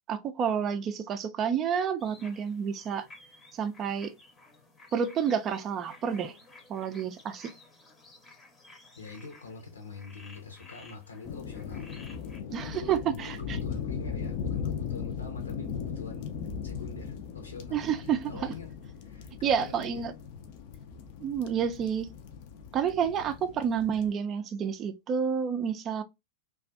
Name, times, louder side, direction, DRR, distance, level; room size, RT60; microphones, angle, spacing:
voice 1, 0.1-3.1 3.5-4.1 4.9-6.4 6.7-7.5 12.5-13.6 17.7-18.5 19.4-20.1 21.2-22.1 22.7-26.0, right 7 dB, 30° right, 0.3 m, -29 dB
sound 1, 2.0-12.4, left 2 dB, 20° left, 0.7 m, -54 dB
voice 2, 9.0-11.9 12.3-16.3 16.6-17.9 18.3-18.7 19.0-20.0 20.3-20.4, left 3 dB, 80° left, 0.8 m, -45 dB
sound 2, 11.2-24.1, left 7 dB, 50° left, 0.4 m, -38 dB
2.5 x 2.3 x 2.4 m
figure-of-eight pair, 95°, 0 cm